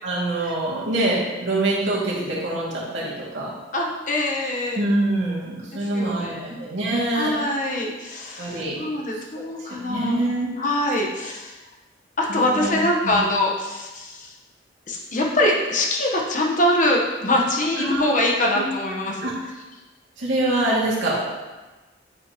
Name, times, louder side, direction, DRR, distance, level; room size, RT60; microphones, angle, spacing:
voice 1, 0.0-3.5 4.7-7.3 8.4-8.8 9.3-9.4 9.9-10.5 12.3-12.7 13.0-13.1 17.8-18.2 18.5-18.6 19.2-19.3 20.2-21.2, right 1 dB, 80° right, -6 dB, 2.3 m, -25 dB
voice 2, 3.7-4.9 5.7-6.7 7.1-11.5 12.2-14.3 14.9-19.3, left 1 dB, 45° left, -1 dB, 1.1 m, -24 dB
9.4 x 5.3 x 3.0 m, 1.2 s
head